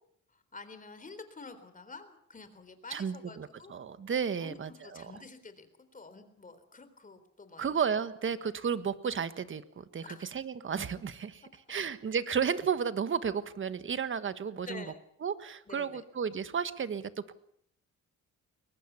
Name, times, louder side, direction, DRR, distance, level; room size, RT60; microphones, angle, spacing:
voice 1, 0.3-3.7 4.4-5.7 5.9-7.7 10.0-10.3 14.7-15.0 15.7-16.0, left 3 dB, 25° left, 10 dB, 3.8 m, -48 dB
voice 2, 2.9-5.1 7.6-11.4 11.7-14.8 15.2-17.3, right 7 dB, 40° right, 13 dB, 1.5 m, -33 dB
22.5 x 19.5 x 7.0 m, 0.69 s
cardioid pair, 90°, 30 cm